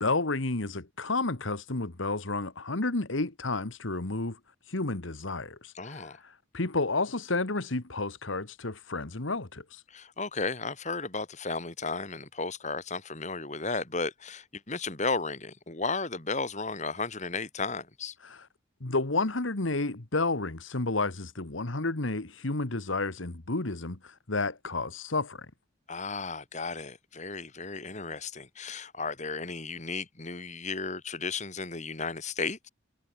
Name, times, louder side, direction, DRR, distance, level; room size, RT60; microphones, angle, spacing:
voice 1, 0.0-4.4 4.7-9.8 18.2-18.5 18.8-25.5, left 3 dB, 80° left, 1.8 m, -31 dB
voice 2, 5.7-6.2 9.9-18.1 25.9-32.7, left 4 dB, 35° left, 2.9 m, -34 dB
head